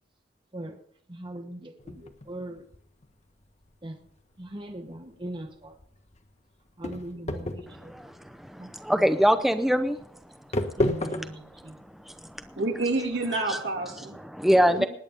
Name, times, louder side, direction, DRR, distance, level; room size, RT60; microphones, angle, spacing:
voice 1, 1.1-2.6 3.8-4.0 4.4-5.7 6.8-7.9 8.6-8.7 10.8-11.7, right 1 dB, 30° right, 5 dB, 1.1 m, -39 dB
sound 1, 1.8-13.2, left 1 dB, 40° left, 1.3 m, -35 dB
voice 2, 7.7-10.0 11.6-11.7 12.1-12.5 13.5-13.6 14.2-14.9, equal, ahead, 8 dB, 0.7 m, -24 dB
voice 3, 12.6-14.2 14.7-14.9, right 2 dB, 70° right, 2 dB, 3.1 m, -28 dB
19.5 x 9.5 x 5.4 m, 0.65 s
head